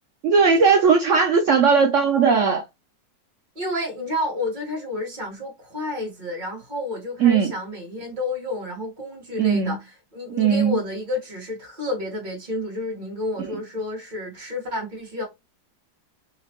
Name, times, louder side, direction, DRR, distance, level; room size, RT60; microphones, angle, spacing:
voice 1, 0.2-2.6 7.2-7.5 9.4-9.8 10.4-10.8, right 5 dB, 90° right, 0.6 m, -18 dB
voice 2, 3.5-9.9 10.1-15.2, left 2 dB, 25° right, 1.6 m, -30 dB
4.2 x 2.9 x 2.9 m
omnidirectional pair, 2.0 m